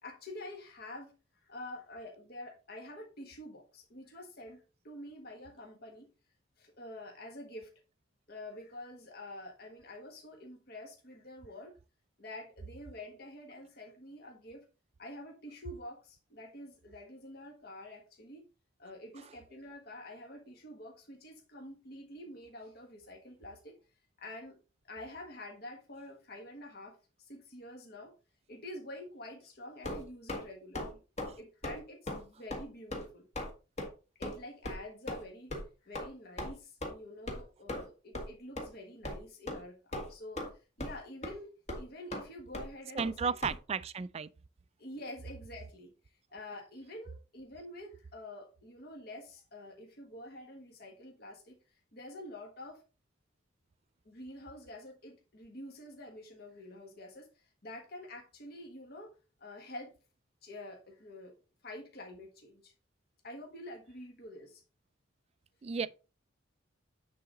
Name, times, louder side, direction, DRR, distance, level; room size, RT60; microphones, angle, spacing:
voice 1, 0.0-1.1 1.4-6.1 6.6-7.7 8.3-11.7 12.2-14.6 15.0-18.4 18.8-23.7 24.2-24.6 24.9-28.1 28.5-31.0 31.4-33.3 34.1-35.6 35.8-40.5 40.8-43.6 44.8-45.9 46.3-51.6 51.9-52.8 54.0-59.9 60.4-61.3 61.6-62.7 63.2-64.6 65.8-65.9, left 1 dB, 50° left, 1.5 m, -47 dB
sound 1, 29.8-30.4 30.7-30.9 31.2-31.4 31.6-31.8 32.1-32.2 32.5-32.6 32.9-33.1 33.4-33.5 33.8-33.9 34.2-34.4 34.6-34.8 35.1-35.2 35.5-35.6 35.9-36.1 36.4-36.5 36.8-36.9 37.3-37.4 37.7-37.9 38.1-38.3 38.6-38.7 39.0-39.2 39.5-39.6 39.9-40.5 40.8-41.0 41.2-41.3 41.7-41.8 42.1-42.2 42.5-42.7 43.0-43.1 43.4-43.5, left 1 dB, 35° left, 1.6 m, -38 dB
voice 2, 43.0-44.3 65.6-65.9, right 5 dB, 30° right, 0.3 m, -33 dB
9.5 x 4.0 x 3.8 m
head